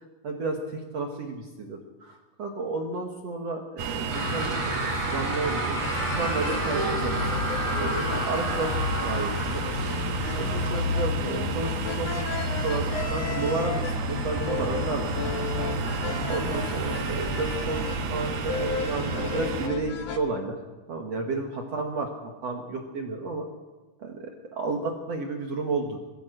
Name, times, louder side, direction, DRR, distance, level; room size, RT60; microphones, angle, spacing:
voice 1, 0.2-5.8 6.1-9.6 10.4-12.2 12.6-15.4 16.3-20.6 20.9-23.5 24.0-26.0, right 3 dB, 55° right, 2 dB, 2.2 m, -32 dB
sound 1, 3.8-19.7, right 4 dB, 70° right, 3.4 m, -32 dB
sound 2, 4.1-10.8, right 1 dB, 25° right, 4.5 m, -31 dB
sound 3, 5.8-20.2, left 4 dB, 60° left, 1.8 m, -32 dB
22.5 x 15.0 x 7.8 m, 1.3 s
omnidirectional pair, 4.4 m